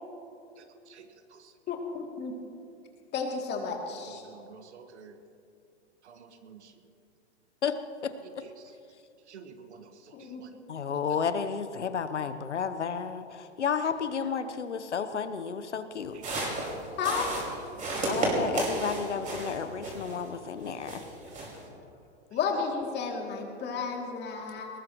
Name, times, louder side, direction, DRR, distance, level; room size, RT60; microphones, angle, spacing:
voice 1, 1.7-2.3 3.1-4.2 10.1-10.4 17.0-17.3 22.3-24.7, left 5 dB, 30° left, 1 dB, 2.8 m, -32 dB
voice 2, 4.2-5.2 6.0-6.7 9.3-10.1 10.4-10.5 16.1-16.5 17.8-18.0, right 6 dB, 75° right, 7 dB, 1.7 m, -50 dB
voice 3, 8.0-8.4 10.7-16.2 18.1-21.0, left 6 dB, 90° left, 11 dB, 1.1 m, -32 dB
sound 1, 16.1-20.3 20.6-21.7, right 2 dB, 20° right, 4.9 m, -32 dB
21.5 x 19.5 x 3.1 m, 2.5 s
hypercardioid pair, 115°, 34 cm